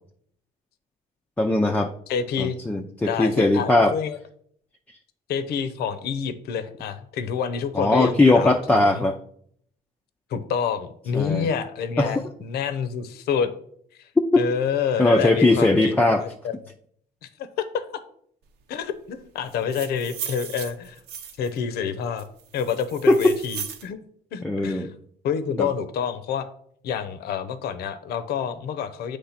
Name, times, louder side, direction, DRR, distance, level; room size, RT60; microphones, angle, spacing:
voice 1, 1.4-1.9 2.4-3.9 7.7-9.2 11.1-11.5 12.0-12.1 14.3-14.4 15.0-16.2 23.1-23.3 24.4-24.9 25.6-25.7, left 2 dB, 10° left, 2 dB, 0.5 m, -19 dB
voice 2, 2.1-2.6 3.0-4.2 5.3-9.1 10.3-13.5 14.0-14.1 14.4-15.9 16.2-16.5 17.2-17.8 18.7-21.0 21.4-22.2 22.5-24.0 24.3-24.9 25.2-26.5 26.8-29.2, left 7 dB, 70° left, 12 dB, 0.7 m, -28 dB
sound 1, 19.5-21.6 22.2-23.9, right 8 dB, 80° right, 0.9 m, -36 dB
8.3 x 3.3 x 5.8 m, 0.65 s
cardioid pair, 110°, 17 cm